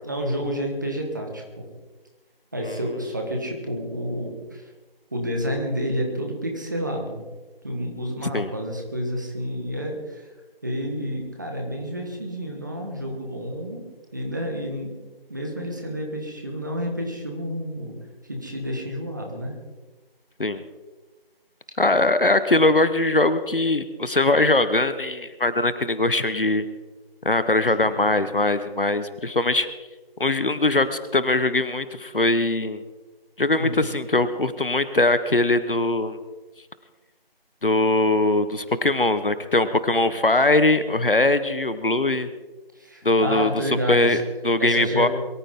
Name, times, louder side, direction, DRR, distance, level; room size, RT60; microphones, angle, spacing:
voice 1, 0.0-1.4 2.5-4.7 5.1-7.2 7.6-10.3 10.6-13.8 14.1-15.0 15.3-18.0 18.3-19.5 27.8-28.1 33.5-33.8 42.7-44.2 44.6-45.1, equal, 20° right, 2 dB, 1.6 m, -29 dB
voice 2, 21.8-26.7 27.2-29.7 30.2-32.8 33.4-36.2 37.6-42.3 43.0-43.5 43.9-44.2 44.4-45.1, left 2 dB, 60° left, 13 dB, 1.3 m, -21 dB
22.5 x 14.0 x 3.8 m, 1.2 s
figure-of-eight pair, 165°, 30 cm